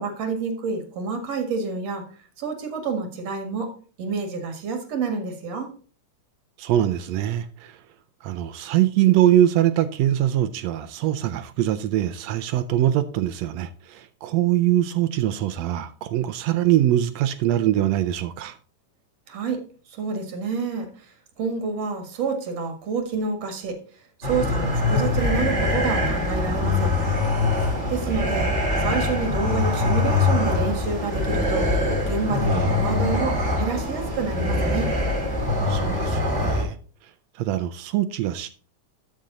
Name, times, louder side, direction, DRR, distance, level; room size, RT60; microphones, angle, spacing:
voice 1, 0.0-2.0 2.4-3.7 4.0-5.7 19.3-19.6 19.9-20.9 21.4-23.8 24.2-26.9 27.9-34.9, right 4 dB, 55° right, 2.8 m, -28 dB
voice 2, 6.6-7.7 8.2-18.6 28.1-28.2 32.5-32.7 35.7-36.8 37.4-38.5, right 12 dB, 85° right, 1.5 m, -23 dB
sound 1, 24.2-36.6, left 2 dB, 25° right, 2.4 m, -23 dB
13.0 x 5.2 x 3.9 m
omnidirectional pair, 3.6 m